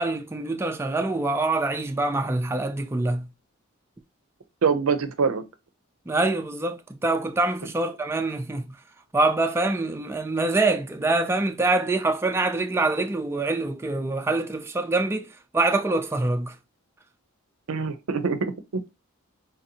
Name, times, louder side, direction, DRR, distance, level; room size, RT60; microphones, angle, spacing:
voice 1, 0.0-3.3 6.1-8.7 9.1-15.3 15.5-16.5, right 2 dB, 10° right, 0.3 m, -25 dB
voice 2, 4.6-5.4 17.7-18.8, right 5 dB, 90° right, 0.5 m, -24 dB
4.1 x 2.6 x 2.8 m
head